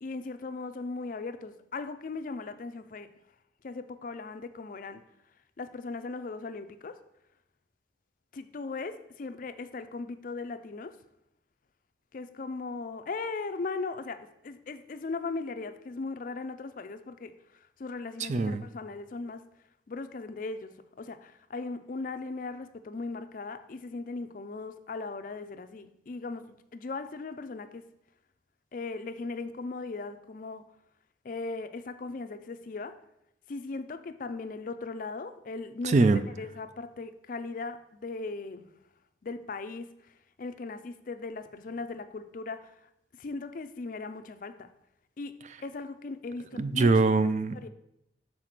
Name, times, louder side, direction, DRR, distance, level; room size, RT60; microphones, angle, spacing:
voice 1, 0.0-3.1 3.6-5.0 5.6-7.0 8.3-11.0 12.1-19.4 19.9-27.9 28.7-30.6 31.2-33.0 33.5-38.6 39.2-40.1 40.4-42.7 43.2-44.7 45.2-46.9 47.5-47.7, left 3 dB, 45° left, 10 dB, 0.4 m, -38 dB
voice 2, 18.2-18.7 35.8-36.2 46.6-47.6, right 3 dB, 40° right, 12 dB, 0.3 m, -23 dB
6.5 x 4.1 x 5.8 m, 0.81 s
head